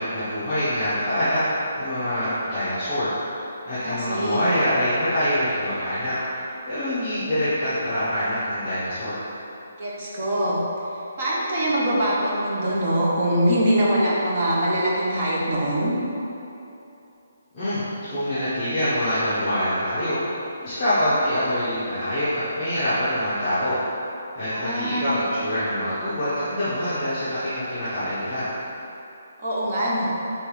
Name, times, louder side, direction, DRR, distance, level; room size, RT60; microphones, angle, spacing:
voice 1, 0.0-1.4 1.8-3.1 3.6-6.1 6.7-9.2 17.5-17.8 18.1-20.2 20.6-23.8 24.4-28.5, equal, 15° left, -16 dB, 0.9 m, -25 dB
voice 2, 3.8-4.5 9.8-10.6 11.2-15.9 24.5-25.1 29.4-30.1, right 1 dB, 30° right, -6 dB, 0.8 m, -23 dB
3.4 x 3.1 x 4.8 m, 2.9 s
hypercardioid pair, 175°, 0 cm